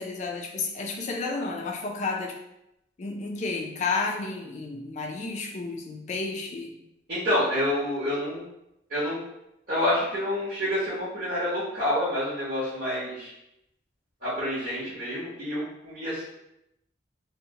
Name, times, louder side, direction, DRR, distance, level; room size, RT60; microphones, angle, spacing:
voice 1, 0.0-2.4 3.0-6.7, left 3 dB, 40° left, 1 dB, 0.3 m, -31 dB
voice 2, 7.1-8.4 8.9-9.2 9.7-13.3 14.2-16.2, left 1 dB, 45° right, -11 dB, 0.9 m, -28 dB
2.7 x 2.1 x 2.7 m, 0.85 s
head